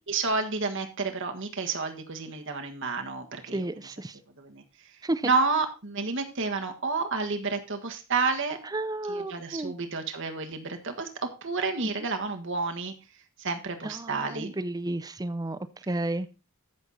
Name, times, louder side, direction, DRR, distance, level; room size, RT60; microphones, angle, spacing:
voice 1, 0.1-3.6 4.4-4.6 5.2-8.6 9.1-11.1 11.4-12.9 13.4-14.5, right 4 dB, 60° right, 5 dB, 1.5 m, -30 dB
voice 2, 3.5-4.2 5.0-5.3 8.6-9.7 11.8-11.9 13.8-15.6 15.9-16.3, right 2 dB, 15° right, 12 dB, 0.5 m, -32 dB
14.5 x 6.3 x 4.1 m, 0.29 s
head